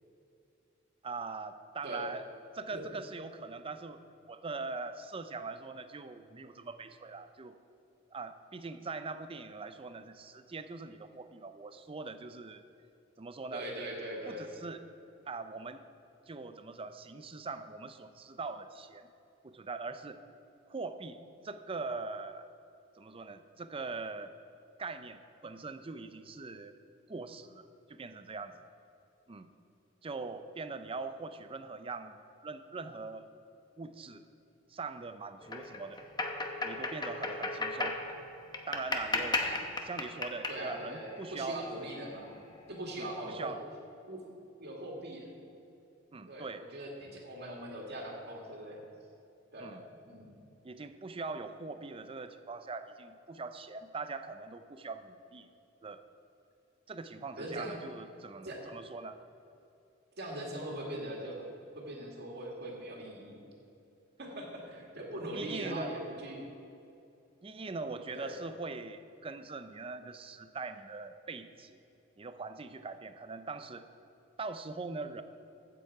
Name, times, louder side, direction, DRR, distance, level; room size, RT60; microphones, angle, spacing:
voice 1, 1.0-2.2 2.5-7.6 8.1-12.6 13.2-13.6 14.3-14.8 15.3-15.8 16.3-19.1 19.4-20.2 20.6-22.5 23.0-24.3 24.8-26.8 27.1-28.6 29.3-29.5 30.0-33.3 33.8-34.2 34.7-36.0 36.6-38.0 38.7-39.5 39.8-41.9 43.0-43.6 46.1-46.6 49.6-49.8 50.6-55.5 55.8-56.0 56.9-59.2 65.3-65.9 67.4-71.8 72.2-73.9 74.4-75.2, right 3 dB, 30° right, 10 dB, 0.5 m, -42 dB
voice 2, 13.5-14.5 39.5-39.6 40.5-42.4 42.7-43.6 44.1-44.2 44.6-45.3 46.3-48.8 49.5-50.4 57.4-57.8 58.4-58.6 60.2-61.5 61.7-63.4 64.2-66.4 68.1-68.4, right 1 dB, 55° right, -1 dB, 2.1 m, -41 dB
sound 1, 35.4-42.1, left 2 dB, 20° left, 0.8 m, -36 dB
15.5 x 6.9 x 4.8 m, 2.7 s
head